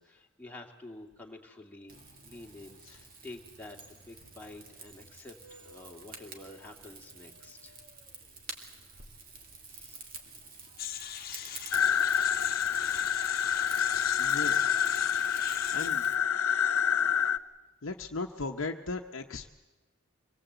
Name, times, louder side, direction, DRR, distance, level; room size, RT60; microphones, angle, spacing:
voice 1, 0.0-2.0 2.2-7.7 9.7-10.1, left 2 dB, 10° left, -1 dB, 2.3 m, -49 dB
Rain / Fire, 1.9-16.2, right 4 dB, 40° right, 2.5 m, -49 dB
sound 1, 10.8-15.9, left 10 dB, 45° left, 1.2 m, -40 dB
sound 2, 11.7-17.4, left 8 dB, 85° left, 0.7 m, -27 dB
voice 2, 14.2-14.8 15.7-16.1 17.8-19.5, left 3 dB, 70° left, 2 dB, 1.0 m, -37 dB
25.0 x 19.5 x 8.1 m, 1.1 s
head